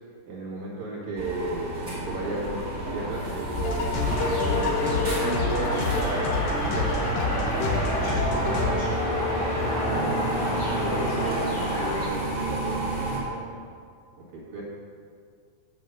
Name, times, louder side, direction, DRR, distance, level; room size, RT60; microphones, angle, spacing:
voice 1, 0.3-3.8 4.2-9.4 9.9-12.9 14.3-14.6, right 2 dB, 60° right, -5 dB, 3.1 m, -34 dB
sound 1, 1.2-13.2, right 2 dB, 25° right, 2.1 m, -31 dB
sound 2, 3.6-8.7, left 3 dB, 90° left, 2.8 m, -28 dB
sound 3, 4.1-12.1, left 2 dB, 55° left, 0.6 m, -30 dB
voice 2, 9.7-10.6 11.0-11.5 12.9-13.6, right 3 dB, 90° right, -1 dB, 1.3 m, -37 dB
8.3 x 6.5 x 6.2 m, 2.3 s
omnidirectional pair, 3.9 m